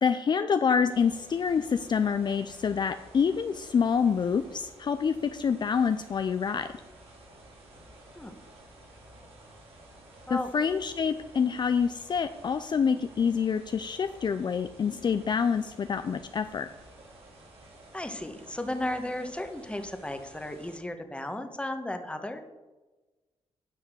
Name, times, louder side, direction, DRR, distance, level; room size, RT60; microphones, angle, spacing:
voice 1, 0.0-6.7 10.3-16.7, left 6 dB, 45° left, 10 dB, 0.5 m, -27 dB
sound 1, 0.9-20.8, right 1 dB, 70° right, 3.7 m, -52 dB
voice 2, 17.9-22.4, left 1 dB, 10° left, 7 dB, 1.3 m, -34 dB
9.9 x 5.7 x 6.3 m, 1.2 s
cardioid pair, 65°, 10 cm